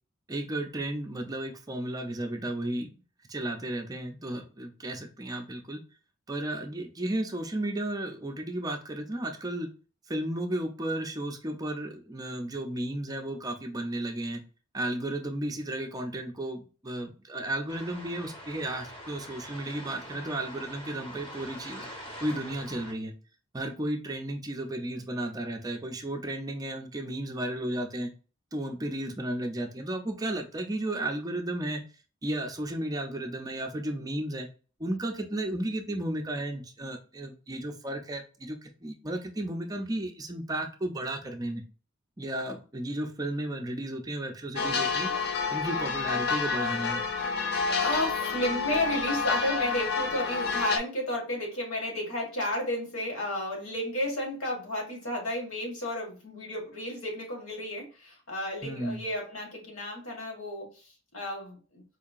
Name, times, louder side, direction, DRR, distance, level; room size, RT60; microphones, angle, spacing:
voice 1, 0.3-3.0 3.3-5.8 6.3-9.7 10.1-14.4 14.7-21.9 22.2-23.1 23.5-28.1 28.5-31.8 32.2-34.5 34.8-41.6 42.2-45.1 45.5-47.1 58.6-59.0, right 1 dB, 15° right, 4 dB, 0.5 m, -33 dB
sound 1, 17.7-22.9, equal, 25° left, 0.9 m, -44 dB
sound 2, 44.6-50.8, left 5 dB, 50° left, 0.5 m, -29 dB
voice 2, 47.7-61.8, left 1 dB, 85° left, -1 dB, 1.8 m, -32 dB
4.4 x 2.8 x 2.4 m, 0.36 s
head